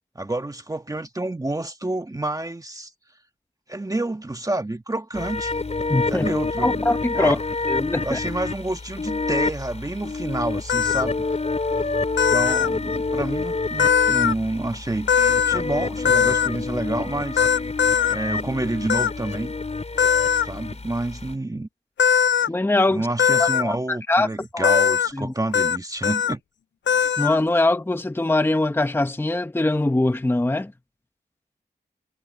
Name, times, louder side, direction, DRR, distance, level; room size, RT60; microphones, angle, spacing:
voice 1, 0.1-2.9 3.7-5.5 6.1-6.9 7.1-7.4 8.0-11.2 12.3-17.5 18.1-19.5 20.0-20.1 20.4-21.7 22.9-26.4, right 2 dB, 20° right, 1.3 m, -28 dB
sound 1, 5.1-21.3, left 3 dB, 35° left, 3.2 m, -28 dB
voice 2, 5.9-6.3 6.6-7.4 7.7-8.2 22.5-23.1 23.4-24.3 24.5-24.7 25.1-25.3 27.2-30.7, left 2 dB, 10° left, 0.8 m, -22 dB
sound 2, 10.7-11.0 12.2-12.7 13.8-14.3 15.1-15.6 16.1-16.5 17.4-18.2 18.9-19.1 20.0-20.5 22.0-22.5 23.2-23.6 24.6-25.1 25.5-25.8 26.0-26.3 26.9-27.4, left 8 dB, 85° left, 0.5 m, -19 dB
wide cardioid pair, 115°, 18 cm